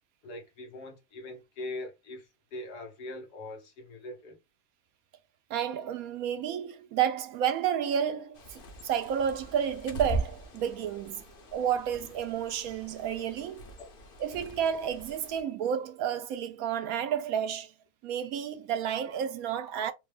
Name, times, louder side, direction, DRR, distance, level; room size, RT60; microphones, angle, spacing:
voice 1, 0.2-4.4 13.2-13.3 13.8-14.0, left 2 dB, 80° left, 1.7 m, -42 dB
voice 2, 5.5-11.2 11.5-13.6 14.2-17.7 18.0-19.9, right 9 dB, 70° right, 1.0 m, -31 dB
Bird, 8.3-15.4, right 1 dB, 45° left, 0.7 m, -40 dB
4.2 x 2.2 x 3.2 m
omnidirectional pair, 1.7 m